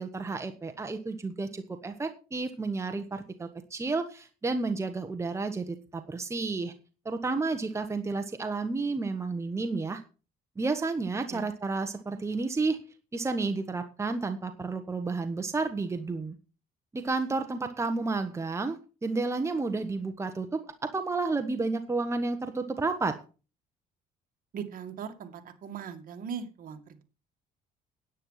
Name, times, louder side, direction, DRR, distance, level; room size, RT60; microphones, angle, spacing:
voice 1, 0.0-6.7 7.0-10.0 10.6-12.8 13.1-16.3 16.9-23.2, right 3 dB, 15° right, 7 dB, 1.3 m, -31 dB
voice 2, 24.5-27.0, right 7 dB, 55° right, 6 dB, 2.2 m, -39 dB
9.9 x 9.3 x 5.8 m, 0.34 s
cardioid pair, 110°, 17 cm